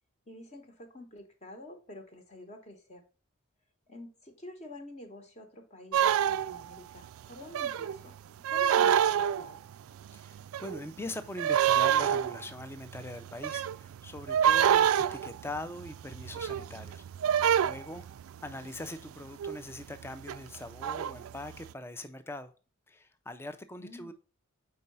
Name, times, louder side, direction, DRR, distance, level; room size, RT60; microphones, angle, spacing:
voice 1, 0.3-3.0 3.9-9.6 23.8-24.1, left 1 dB, 30° left, 0.9 m, -49 dB
sound 1, 5.9-6.8 7.5-8.0 8.4-9.7 10.0-11.0 11.4-18.5 19.4-19.7 20.0-21.5, right 9 dB, 80° right, 0.3 m, -27 dB
voice 2, 10.1-17.0 17.3-18.1 18.4-22.5 22.9-24.1, left 1 dB, 10° left, 0.4 m, -42 dB
4.7 x 4.3 x 5.3 m
head